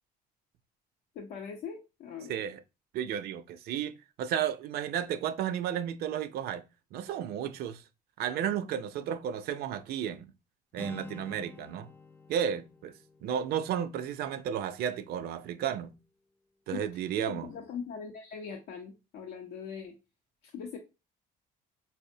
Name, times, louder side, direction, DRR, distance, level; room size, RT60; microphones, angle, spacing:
voice 1, 1.1-2.4 16.7-16.8 17.2-19.9 20.5-20.8, left 6 dB, 80° left, 0.6 m, -41 dB
voice 2, 2.3-2.6 2.9-6.6 6.9-7.8 8.2-10.3 10.7-11.9 12.3-12.9 13.2-15.9 16.7-17.5, right 9 dB, 70° right, 0.4 m, -33 dB
Acoustic guitar, 10.7-14.7, left 3 dB, 10° left, 0.3 m, -49 dB
4.3 x 2.0 x 2.6 m
cardioid pair, 110°, 17 cm